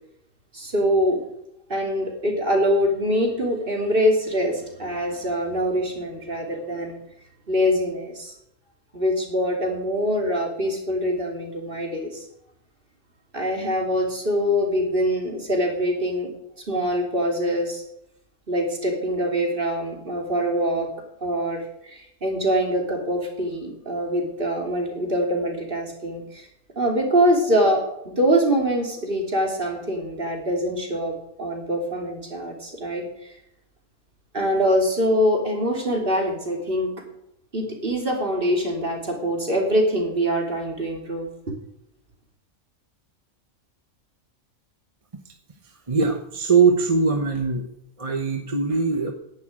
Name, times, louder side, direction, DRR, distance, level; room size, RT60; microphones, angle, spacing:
voice 1, 0.5-1.2 1.7-7.0 7.5-8.3 8.9-12.2 13.3-16.3 16.7-17.8 18.5-20.9 21.2-26.5 26.7-31.1 31.4-33.0 34.3-36.9 37.5-41.5, equal, 45° right, 0 dB, 3.3 m, -24 dB
voice 2, 45.9-47.7 48.0-49.1, right 5 dB, 30° right, 4 dB, 1.1 m, -21 dB
11.0 x 8.0 x 8.9 m, 0.83 s
omnidirectional pair, 1.3 m